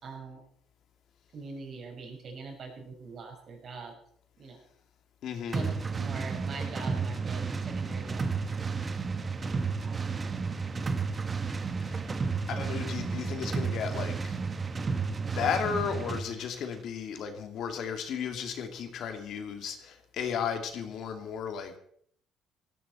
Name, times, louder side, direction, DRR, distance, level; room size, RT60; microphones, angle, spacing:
voice 1, 0.0-0.4 1.3-3.9 4.4-4.6 5.5-8.8 9.8-10.5, right 4 dB, 45° right, 2 dB, 5.9 m, -43 dB
voice 2, 5.2-5.7 11.9-12.0 12.5-14.4 15.1-21.8, left 7 dB, 65° left, 5 dB, 2.8 m, -34 dB
sound 1, 5.5-16.3, right 4 dB, 25° right, 1.5 m, -32 dB
17.5 x 15.0 x 4.5 m, 0.63 s
cardioid pair, 125°, 0 cm